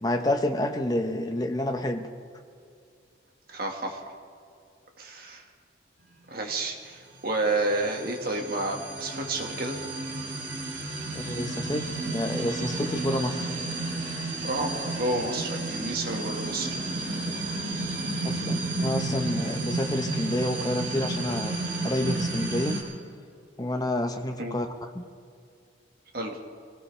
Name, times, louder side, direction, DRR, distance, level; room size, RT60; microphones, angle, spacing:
voice 1, 0.0-2.1 11.1-13.5 18.2-21.6 21.8-22.8 23.6-24.7 24.9-25.1, left 1 dB, 20° left, 5 dB, 0.9 m, -29 dB
voice 2, 3.5-4.0 5.0-5.4 6.3-9.9 14.4-16.8 24.4-24.6 26.1-26.4, right 2 dB, 50° right, 2 dB, 1.9 m, -30 dB
sound 1, 7.1-22.8, right 2 dB, 75° right, 4.1 m, -32 dB
24.0 x 17.5 x 3.4 m, 2.4 s
head